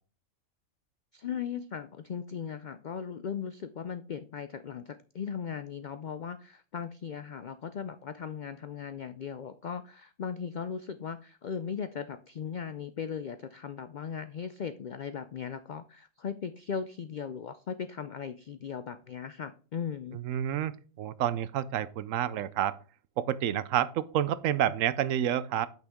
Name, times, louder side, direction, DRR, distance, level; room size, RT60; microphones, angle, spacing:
voice 1, 1.1-20.2, left 7 dB, 80° left, 11 dB, 0.4 m, -38 dB
voice 2, 20.1-20.7 21.0-22.8 23.2-25.7, right 11 dB, 75° right, 16 dB, 0.9 m, -29 dB
8.7 x 6.0 x 3.6 m, 0.38 s
omnidirectional pair, 1.4 m